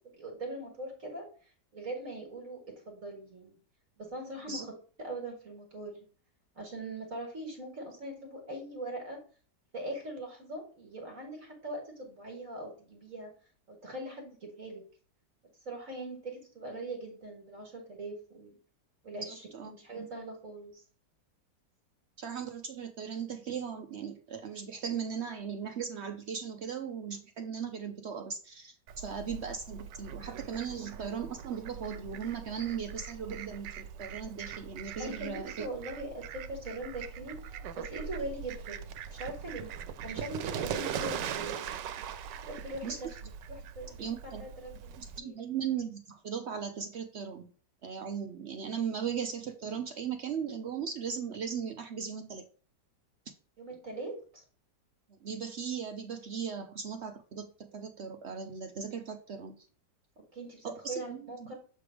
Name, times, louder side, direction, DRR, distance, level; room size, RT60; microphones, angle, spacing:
voice 1, 0.2-3.6 4.0-4.7 5.0-6.0 6.6-9.2 9.7-13.3 13.7-14.8 15.7-18.6 19.0-20.8 35.0-39.8 40.0-41.7 42.4-43.2 43.8-44.0 44.4-45.3 53.6-54.4 60.3-61.5, right 1 dB, 50° right, 1 dB, 1.8 m, -41 dB
voice 2, 19.3-19.7 22.2-35.7 42.8-43.0 44.0-44.4 45.0-47.5 47.8-52.4 55.2-59.7 60.6-61.5, right 7 dB, 70° right, 6 dB, 0.6 m, -38 dB
Fowl, 28.9-45.2, right 8 dB, 85° right, 1.3 m, -41 dB
7.7 x 3.4 x 4.8 m, 0.40 s
omnidirectional pair, 1.9 m